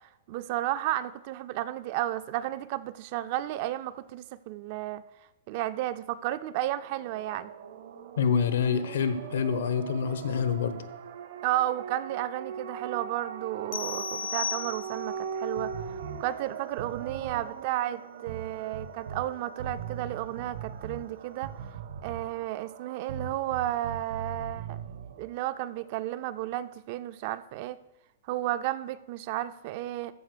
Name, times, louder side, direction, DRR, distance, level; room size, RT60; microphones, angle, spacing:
voice 1, 0.3-5.0 5.5-7.5 11.4-15.9 16.2-21.5 22.0-24.8 25.2-27.8 28.3-30.1, right 14 dB, 35° right, 14 dB, 0.4 m, -32 dB
sound 1, 6.7-26.1, right 7 dB, 55° right, 0.8 m, -42 dB
voice 2, 8.2-10.8, left 6 dB, 85° left, 12 dB, 1.0 m, -27 dB
sound 2, 13.7-15.2, left 7 dB, 55° left, 0.6 m, -34 dB
sound 3, 15.6-16.2 16.7-17.5 18.3-19.3 19.6-21.1 21.4-22.4 23.1-25.2, right 6 dB, 70° right, 1.1 m, -40 dB
14.0 x 4.8 x 6.7 m, 0.95 s
supercardioid pair, 175°, 0 cm